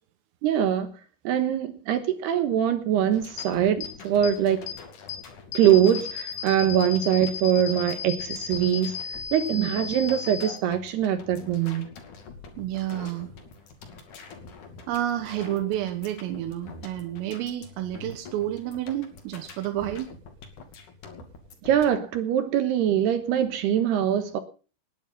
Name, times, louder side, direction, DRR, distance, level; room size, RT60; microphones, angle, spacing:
voice 1, 0.4-0.9 1.2-4.6 5.5-8.9 9.3-11.9 21.6-24.4, right 10 dB, 70° right, 2.8 m, -23 dB
sound 1, 3.1-21.9, left 4 dB, 45° left, 3.3 m, -46 dB
sound 2, 3.4-3.5 3.8-3.9 4.2-4.3 4.7-4.8 5.1-5.2 5.5-10.5, left 7 dB, 65° left, 2.5 m, -34 dB
voice 2, 12.6-13.3 14.9-20.1, right 12 dB, 85° right, 3.9 m, -30 dB
19.5 x 10.0 x 5.6 m
omnidirectional pair, 5.7 m